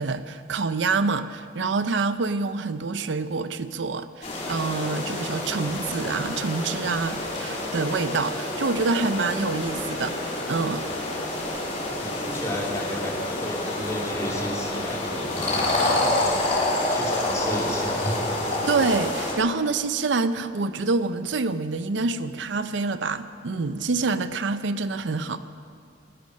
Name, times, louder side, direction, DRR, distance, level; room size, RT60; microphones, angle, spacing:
voice 1, 0.0-10.2 10.5-10.9 18.7-25.4, right 4 dB, 75° right, 12 dB, 0.6 m, -26 dB
sound 1, 4.2-19.3, left 1 dB, 40° left, 3.4 m, -28 dB
voice 2, 11.8-16.4 16.9-18.2, equal, 15° left, -2 dB, 2.7 m, -33 dB
20.0 x 11.0 x 6.3 m, 2.3 s
head